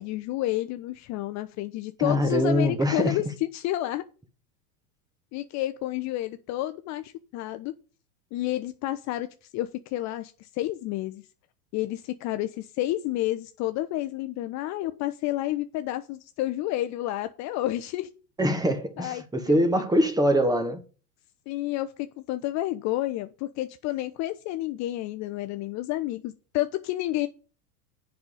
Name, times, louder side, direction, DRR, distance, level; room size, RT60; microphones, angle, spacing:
voice 1, 0.0-3.2 3.5-4.1 5.3-7.7 8.3-9.3 9.5-11.2 11.7-18.1 19.0-19.6 21.5-27.3, left 15 dB, 35° left, 0.6 m, -30 dB
voice 2, 2.0-3.2 18.4-20.8, equal, 10° right, 1.3 m, -23 dB
7.8 x 5.6 x 6.4 m
hypercardioid pair, 100°, 47 cm